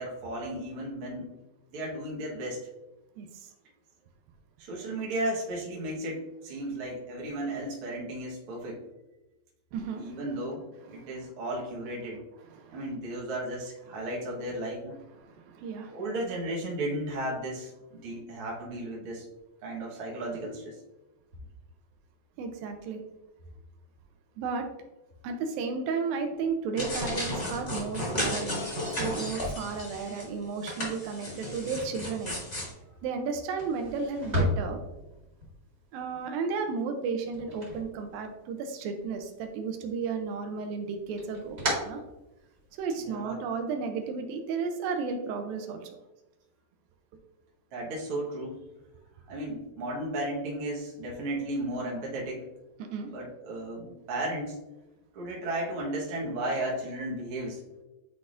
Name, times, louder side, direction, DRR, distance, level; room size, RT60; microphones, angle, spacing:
voice 1, 0.0-1.3 1.7-2.7 4.6-8.8 10.0-12.2 12.7-15.0 15.9-19.2 19.6-20.8 43.0-43.4 47.7-48.6 49.3-52.5 53.1-54.6 55.1-57.6, right 1 dB, 60° right, -3 dB, 1.6 m, -34 dB
voice 2, 3.2-3.5 9.7-10.2 11.0-11.1 12.5-12.8 15.2-16.0 22.4-23.0 24.4-24.7 25.2-28.6 29.0-32.3 33.0-34.8 35.9-41.6 41.8-42.0 42.7-45.9 52.8-53.1, right 5 dB, 80° right, 5 dB, 2.4 m, -33 dB
sound 1, 26.8-30.3 30.6-32.7, left 1 dB, 30° left, 1.2 m, -34 dB
sound 2, 28.7-38.7 39.0-39.8 40.2-42.8, equal, 30° right, 1.9 m, -37 dB
9.8 x 4.0 x 2.5 m, 1.0 s
omnidirectional pair, 4.1 m